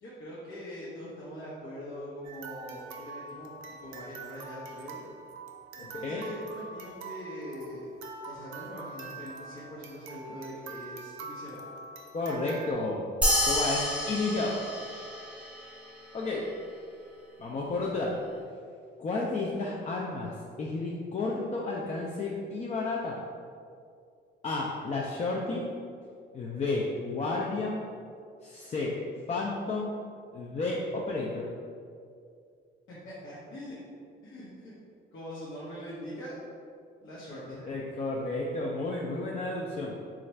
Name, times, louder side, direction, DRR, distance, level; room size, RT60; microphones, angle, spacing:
voice 1, 0.0-3.5 3.8-5.1 5.7-7.9 8.2-11.6 33.0-33.8 34.2-34.7 35.1-36.4 37.0-37.6, equal, 75° left, -9 dB, 0.9 m, -42 dB
sound 1, 2.2-12.7, right 3 dB, 80° right, 0.5 m, -44 dB
voice 2, 12.1-13.0 13.5-14.6 16.1-16.5 17.4-18.1 19.0-23.2 24.4-25.7 26.3-27.9 28.4-29.0 29.3-29.9 30.3-31.5 37.3-39.9, left 3 dB, 35° left, -3 dB, 0.4 m, -32 dB
sound 2, 13.2-16.0, equal, 5° right, 0.7 m, -29 dB
3.0 x 2.4 x 4.3 m, 2.3 s
cardioid pair, 90°, 20 cm